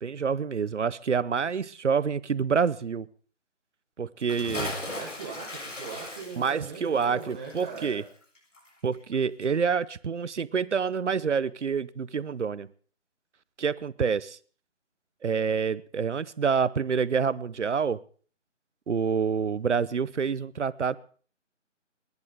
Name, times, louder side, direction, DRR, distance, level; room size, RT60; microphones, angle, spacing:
voice 1, 0.0-3.1 4.0-4.7 6.4-8.0 8.8-12.7 13.6-14.4 15.2-18.0 18.9-21.0, right 6 dB, 65° right, 19 dB, 0.8 m, -27 dB
Bathtub (filling or washing) / Splash splatter, 4.2-9.1 9.4-9.5, left 2 dB, 75° left, 7.4 m, -38 dB
voice 2, 4.9-8.0, right 5 dB, 5° right, -2 dB, 1.0 m, -40 dB
29.5 x 11.0 x 3.7 m, 0.43 s
figure-of-eight pair, 165°, 37 cm